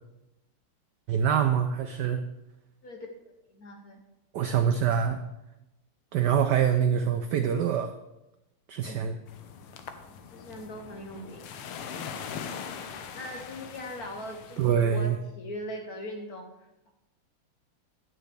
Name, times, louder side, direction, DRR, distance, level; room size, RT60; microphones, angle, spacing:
voice 1, 1.1-2.3 4.3-5.2 6.1-7.9 8.7-9.2 14.6-15.2, right 8 dB, 90° right, 8 dB, 0.9 m, -25 dB
voice 2, 3.5-4.0 8.8-9.1 10.0-11.5 12.9-16.9, left 1 dB, 55° left, 2 dB, 1.1 m, -40 dB
sound 1, 9.3-14.7, left 7 dB, 90° left, 1.6 m, -41 dB
9.0 x 9.0 x 3.3 m, 0.95 s
omnidirectional pair, 2.4 m